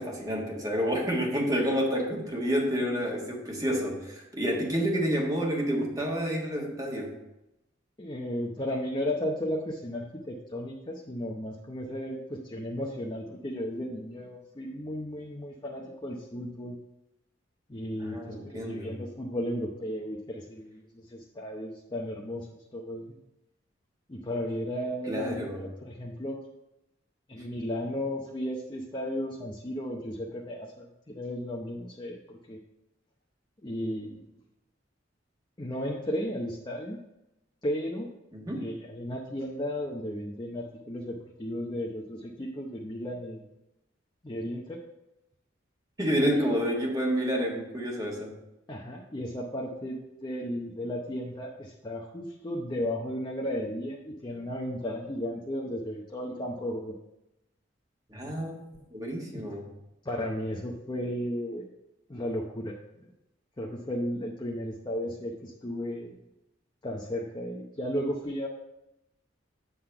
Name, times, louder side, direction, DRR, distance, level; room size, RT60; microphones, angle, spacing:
voice 1, 0.0-7.2 18.0-19.0 25.1-25.6 38.3-38.7 46.0-48.3 58.1-58.6 58.9-59.7, equal, 20° right, -1 dB, 1.5 m, -29 dB
voice 2, 8.0-16.8 17.7-23.2 24.1-26.4 27.3-32.6 33.6-34.2 35.6-37.0 37.6-38.1 38.5-43.4 44.2-44.8 46.1-46.5 48.7-57.0 59.3-59.4 60.0-61.6 62.1-63.0 63.6-66.2 66.8-68.5, equal, 25° left, -2 dB, 0.7 m, -34 dB
8.2 x 3.9 x 5.8 m, 0.93 s
head